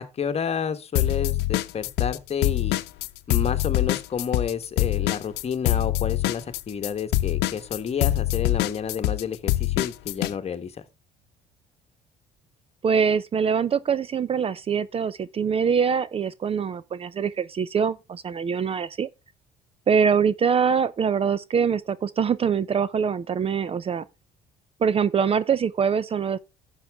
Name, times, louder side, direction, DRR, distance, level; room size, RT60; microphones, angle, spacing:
voice 1, 0.0-2.8 3.3-10.7, left 7 dB, 40° left, 1.4 m, -30 dB
sound 1, 1.0-2.2 2.4-10.3, left 16 dB, 90° left, 0.7 m, -24 dB
voice 2, 12.8-19.1 19.9-24.0 24.8-26.4, right 6 dB, 35° right, 0.6 m, -24 dB
11.5 x 7.3 x 3.5 m
cardioid pair, 110°, 17 cm